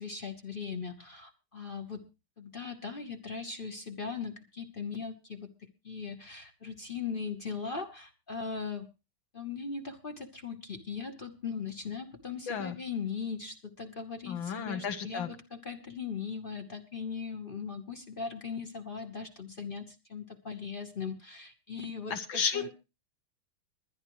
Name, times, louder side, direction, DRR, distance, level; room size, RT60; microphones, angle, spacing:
voice 1, 0.0-2.1 2.4-8.9 9.3-22.7, left 5 dB, 35° left, 5 dB, 0.9 m, -39 dB
voice 2, 14.3-15.3 22.1-22.7, left 6 dB, 70° left, 9 dB, 1.8 m, -33 dB
21.5 x 10.5 x 3.1 m, 0.30 s
omnidirectional pair, 2.3 m